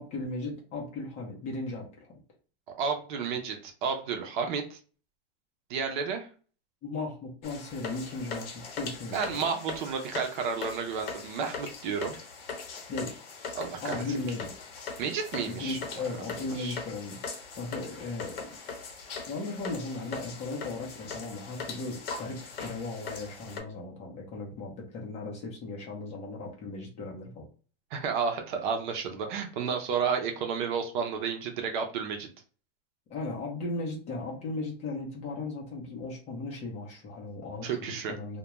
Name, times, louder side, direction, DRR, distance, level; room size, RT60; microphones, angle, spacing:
voice 1, 0.0-2.1 6.8-9.3 12.9-13.1 13.8-14.5 15.5-18.4 19.3-27.5 33.1-38.4, left 3 dB, 20° left, -2 dB, 0.7 m, -37 dB
voice 2, 2.8-4.8 5.7-6.3 9.1-12.2 13.5-14.2 15.0-15.8 16.5-16.8 27.9-32.3 37.6-38.1, right 6 dB, 55° right, 4 dB, 0.6 m, -31 dB
sound 1, 7.4-23.6, left 5 dB, 70° left, 1.0 m, -41 dB
2.3 x 2.2 x 2.9 m, 0.38 s
supercardioid pair, 150°, 30 cm